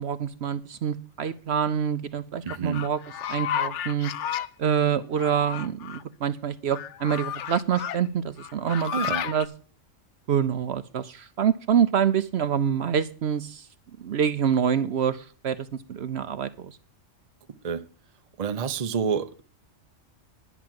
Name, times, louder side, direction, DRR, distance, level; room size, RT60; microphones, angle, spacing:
voice 1, 0.0-3.0 3.3-4.1 4.6-9.5 10.3-13.6 14.0-15.6 15.9-16.8, right 8 dB, 60° right, 0.9 m, -26 dB
voice 2, 2.4-2.8 8.9-9.3 17.6-17.8 18.4-19.4, right 6 dB, 40° right, 0.7 m, -28 dB
sound 1, 2.5-4.5 5.2-6.0 6.7-8.0 8.4-9.5, left 10 dB, 70° left, 0.9 m, -32 dB
11.0 x 5.9 x 7.5 m
omnidirectional pair, 1.3 m